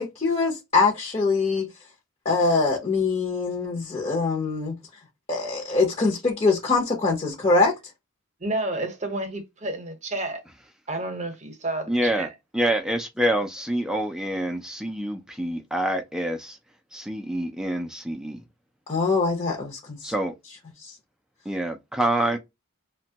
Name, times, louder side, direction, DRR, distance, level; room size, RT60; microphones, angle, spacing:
voice 1, 0.0-1.7 2.2-4.7 5.3-7.7 18.9-20.1 20.8-20.9, left 3 dB, 30° left, 0.7 m, -23 dB
voice 2, 8.4-10.4 10.9-12.3, right 2 dB, 35° right, 0.8 m, -30 dB
voice 3, 11.9-16.6 16.9-18.4 20.0-20.3 21.5-22.4, right 1 dB, 5° right, 0.4 m, -27 dB
3.0 x 2.2 x 2.7 m
head